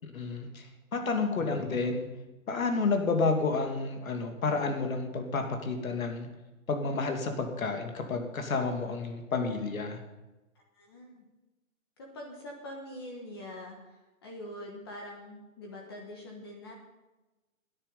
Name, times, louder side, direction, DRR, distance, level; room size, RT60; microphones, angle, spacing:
voice 1, 0.1-0.7 0.9-2.0 2.5-6.3 6.7-10.0, left 4 dB, 80° left, 5 dB, 2.7 m, -30 dB
voice 2, 1.0-1.4 10.7-11.2 12.0-16.7, left 1 dB, 20° left, 1 dB, 1.2 m, -44 dB
17.5 x 9.9 x 5.6 m, 1.1 s
hypercardioid pair, 180°, 41 cm